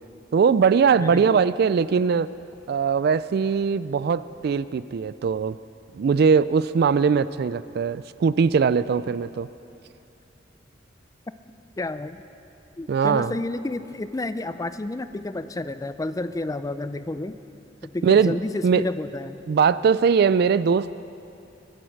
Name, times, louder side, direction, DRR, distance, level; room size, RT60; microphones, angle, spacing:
voice 1, 0.3-2.3 2.7-5.6 5.9-9.5 12.9-13.3 18.0-18.4 18.6-18.8 19.5-20.9, right 6 dB, 55° right, 16 dB, 0.3 m, -20 dB
voice 2, 1.0-1.4 9.1-9.2 11.8-12.2 12.8-17.4 17.8-19.4, left 2 dB, 20° left, 12 dB, 0.4 m, -30 dB
23.0 x 7.8 x 6.4 m, 2.7 s
head